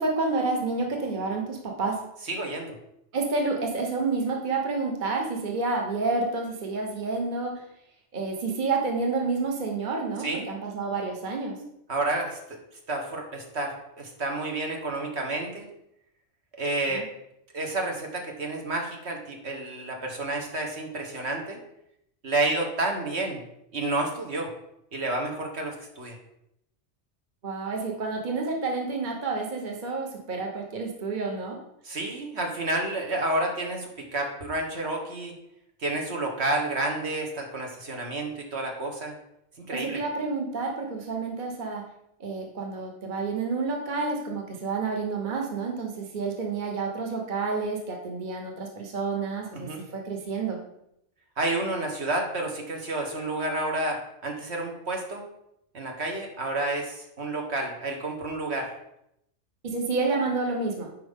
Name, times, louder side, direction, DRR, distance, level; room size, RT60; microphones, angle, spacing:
voice 1, 0.0-2.0 3.1-7.6 8.1-11.6 16.9-17.0 27.4-31.6 39.7-41.8 42.2-50.6 59.6-60.9, right 3 dB, 45° right, 1 dB, 1.3 m, -29 dB
voice 2, 2.2-2.8 10.2-10.4 11.9-12.6 12.9-15.7 16.6-17.1 17.5-21.6 22.2-23.4 23.7-24.5 24.9-26.2 31.8-35.3 35.8-39.1 39.6-40.0 49.5-49.8 51.4-55.2 55.7-58.7, right 2 dB, 65° right, 1 dB, 1.5 m, -30 dB
10.0 x 5.1 x 3.6 m, 0.78 s
omnidirectional pair, 1.2 m